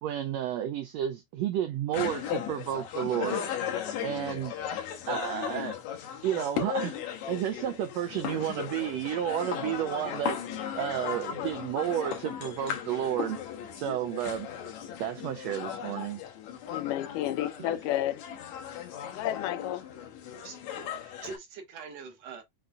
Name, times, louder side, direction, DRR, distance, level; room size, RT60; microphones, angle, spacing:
voice 1, 0.0-3.4 4.0-4.5 5.1-5.8 6.2-10.4 10.7-13.4 13.7-14.5 15.0-16.2, right 11 dB, 90° right, 1.4 m, -31 dB
sound 1, 1.9-21.4, left 9 dB, 70° left, 2.2 m, -36 dB
voice 2, 16.7-18.2 19.1-19.9, left 13 dB, 90° left, 2.3 m, -31 dB
voice 3, 21.0-22.4, right 5 dB, 65° right, 2.1 m, -43 dB
5.7 x 3.9 x 2.3 m
omnidirectional pair, 3.6 m